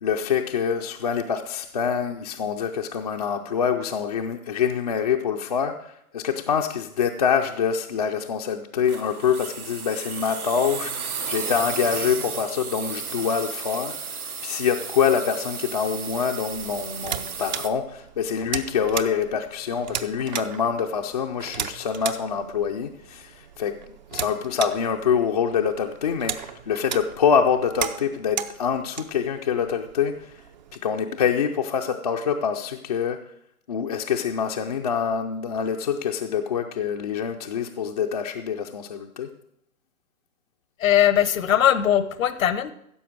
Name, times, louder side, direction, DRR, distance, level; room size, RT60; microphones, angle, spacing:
voice 1, 0.0-30.4 30.8-33.2 33.7-39.3, left 7 dB, 30° left, 2 dB, 0.4 m, -25 dB
sound 1, 8.9-17.7, right 6 dB, 85° right, 1.3 m, -34 dB
sound 2, 16.5-30.8, right 9 dB, 35° right, 0.5 m, -36 dB
voice 2, 40.8-42.7, left 10 dB, 65° left, 14 dB, 0.9 m, -20 dB
15.0 x 6.8 x 4.7 m, 0.76 s
figure-of-eight pair, 130°, 43 cm